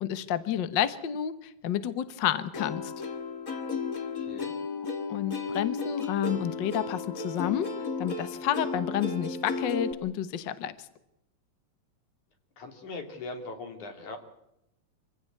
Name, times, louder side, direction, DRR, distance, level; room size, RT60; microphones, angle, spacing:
voice 1, 0.0-2.9 5.1-7.7 8.0-10.7, left 10 dB, 50° left, 12 dB, 1.5 m, -30 dB
Plucked string instrument, 2.5-9.9, left 4 dB, 30° left, 2.0 m, -34 dB
voice 2, 4.1-4.5 12.6-14.2, left 3 dB, 85° left, 5 dB, 4.5 m, -40 dB
26.0 x 16.0 x 8.4 m, 0.83 s
omnidirectional pair, 3.3 m